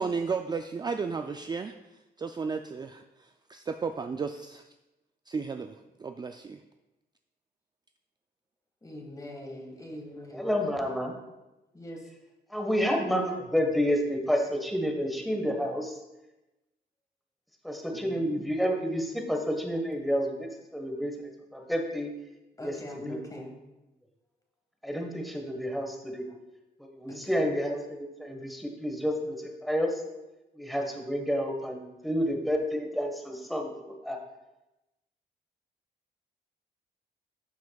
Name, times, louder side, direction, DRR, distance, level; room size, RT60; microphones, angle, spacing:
voice 1, 0.0-4.7 5.3-6.6, right 5 dB, 25° right, 6 dB, 0.3 m, -34 dB
voice 2, 8.8-10.5 11.7-12.0 17.9-18.5 22.6-23.5 27.1-27.2, left 1 dB, 20° left, 1 dB, 1.7 m, -42 dB
voice 3, 10.3-11.1 12.5-16.0 17.6-22.1 22.6-23.2 24.8-26.3 26.8-30.0 30.5-34.2, equal, ahead, 3 dB, 1.3 m, -30 dB
12.5 x 5.8 x 2.3 m, 1.0 s
cardioid pair, 90°, 17 cm